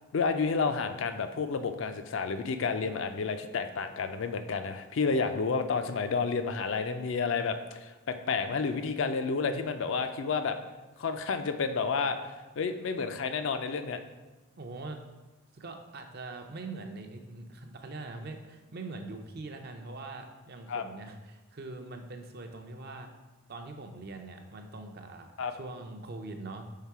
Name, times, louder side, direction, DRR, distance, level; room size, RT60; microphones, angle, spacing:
voice 1, 0.1-10.6 11.0-14.0 20.7-20.8 25.4-25.5, left 5 dB, 60° left, 8 dB, 0.4 m, -30 dB
voice 2, 14.6-15.0 15.5-23.1 23.5-26.7, right 3 dB, 45° right, 5 dB, 0.5 m, -42 dB
5.7 x 3.7 x 4.7 m, 1.2 s
head